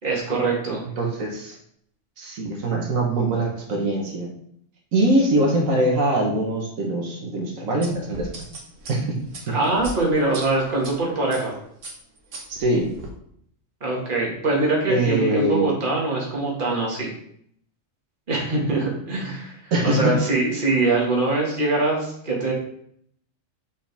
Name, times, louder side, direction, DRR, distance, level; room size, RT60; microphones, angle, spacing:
voice 1, 0.0-0.8 9.5-11.6 13.8-17.1 18.3-22.5, right 2 dB, 40° right, -3 dB, 1.9 m, -23 dB
voice 2, 1.0-1.5 2.2-4.3 4.9-8.3 8.9-9.2 9.5-9.6 12.6-12.9 14.9-15.8 19.7-20.1, right 1 dB, 85° right, -1 dB, 1.6 m, -22 dB
sound 1, 7.8-10.9 11.3-11.5 11.8-13.1, right 1 dB, 70° right, 1.6 m, -38 dB
6.9 x 5.2 x 3.4 m, 0.68 s
omnidirectional pair, 1.4 m